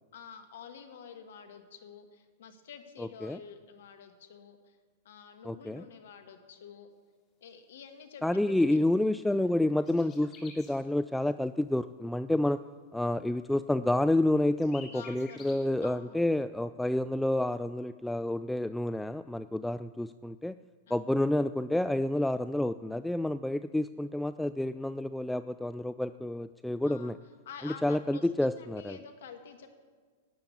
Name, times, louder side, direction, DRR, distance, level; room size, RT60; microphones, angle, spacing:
voice 1, 0.1-4.8 5.1-6.9 7.4-8.8 14.8-16.2 20.9-21.1 26.9-27.1 27.5-29.7, left 7 dB, 65° left, 7 dB, 1.8 m, -49 dB
voice 2, 3.0-3.4 5.4-5.8 8.2-12.6 12.9-20.6 20.9-27.2 27.6-29.0, left 1 dB, 5° left, 13 dB, 0.3 m, -29 dB
sound 1, 7.4-7.5 7.8-10.8 13.2-13.3 13.6-13.7 13.9-15.6, left 4 dB, 30° left, 3.0 m, -53 dB
12.5 x 8.6 x 9.3 m, 1.5 s
hypercardioid pair, 100°, 0 cm